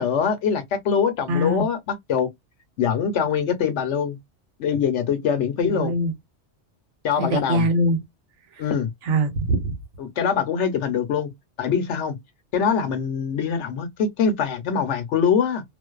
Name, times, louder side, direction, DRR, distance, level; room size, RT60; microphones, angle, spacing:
voice 1, 0.0-2.3 2.8-4.2 4.6-5.9 7.0-7.7 8.6-8.9 10.0-11.3 11.6-12.2 12.5-15.6, left 7 dB, 70° left, 1.0 m, -23 dB
voice 2, 1.3-1.7 5.7-6.1 7.1-8.0 9.0-9.7, right 1 dB, 75° right, 1.1 m, -22 dB
2.5 x 2.2 x 2.3 m
omnidirectional pair, 1.3 m